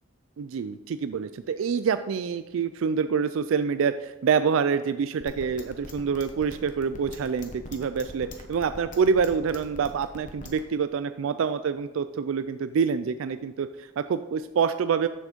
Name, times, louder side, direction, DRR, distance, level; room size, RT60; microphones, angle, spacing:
voice 1, 0.4-15.1, right 6 dB, 75° right, 11 dB, 0.3 m, -26 dB
sound 1, 5.2-10.6, left 2 dB, 35° left, 1.1 m, -42 dB
7.5 x 7.0 x 5.2 m, 1.0 s
head